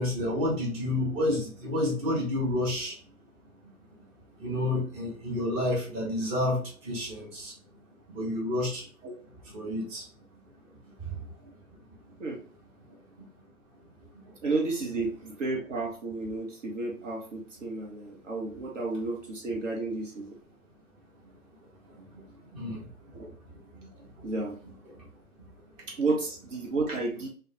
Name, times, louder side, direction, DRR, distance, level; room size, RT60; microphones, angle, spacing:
voice 1, 0.0-3.0 4.4-7.5 8.1-8.9 9.5-10.1 11.0-11.3 22.4-22.9 24.9-25.0, left 1 dB, 25° right, -3 dB, 1.0 m, -30 dB
voice 2, 14.4-20.3 23.1-23.3 24.2-24.6 25.9-27.3, right 3 dB, 55° right, -1 dB, 0.9 m, -32 dB
3.5 x 2.3 x 2.7 m, 0.41 s
figure-of-eight pair, 130°, 44 cm